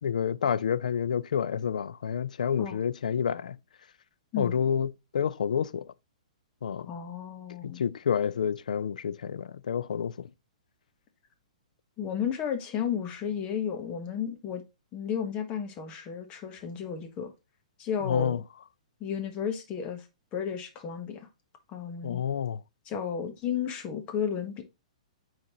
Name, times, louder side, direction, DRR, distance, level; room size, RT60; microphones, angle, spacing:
voice 1, 0.0-3.6 4.4-5.9 6.6-6.9 7.6-10.3 18.0-18.4 22.0-22.6, left 7 dB, 80° left, 0.4 m, -29 dB
voice 2, 6.9-7.8 12.0-14.6 14.9-17.3 17.8-18.4 19.0-20.0 20.3-21.3 21.7-22.2 22.8-24.6, left 8 dB, 25° left, 1.3 m, -33 dB
8.6 x 4.0 x 3.0 m
hypercardioid pair, 145°, 4 cm